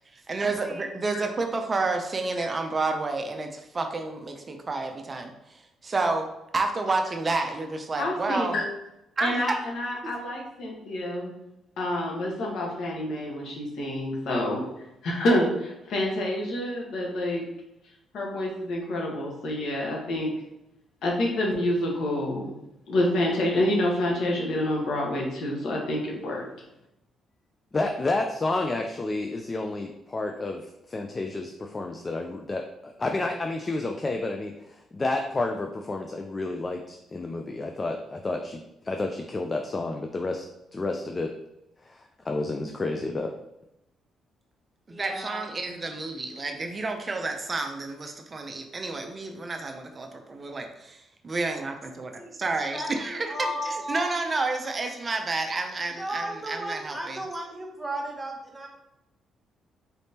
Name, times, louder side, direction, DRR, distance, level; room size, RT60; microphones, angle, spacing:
voice 1, 0.1-6.3 6.5-8.6 9.2-9.6 44.9-57.2, right 3 dB, 35° right, 5 dB, 0.5 m, -30 dB
voice 2, 8.0-8.6 9.2-11.3 11.8-14.6 15.0-17.4 18.1-20.3 21.0-22.5 22.9-26.4, left 1 dB, 70° left, -2 dB, 1.2 m, -27 dB
voice 3, 27.7-32.7 33.0-40.5 40.7-41.3 41.9-43.3, left 2 dB, 30° left, 4 dB, 0.4 m, -30 dB
voice 4, 44.9-45.4 52.2-52.3 52.7-54.1 56.0-58.7, right 1 dB, 15° right, 0 dB, 1.0 m, -34 dB
4.1 x 3.4 x 2.8 m, 0.87 s
cardioid pair, 90°, 0 cm